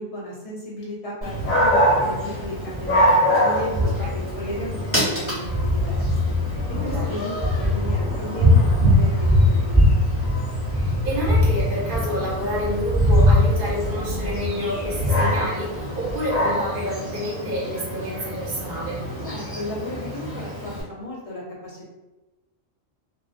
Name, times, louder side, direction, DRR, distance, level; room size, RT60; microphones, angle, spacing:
voice 1, 0.0-1.3 1.6-6.3 6.8-9.9 19.2-21.9, left 1 dB, 35° left, -7 dB, 0.8 m, -34 dB
Dog, 1.2-20.8, left 1 dB, 10° left, 1.2 m, -22 dB
voice 2, 6.8-7.3 10.7-19.0, equal, 45° right, -5 dB, 0.8 m, -29 dB
2.3 x 2.3 x 2.4 m, 1.1 s
omnidirectional pair, 1.3 m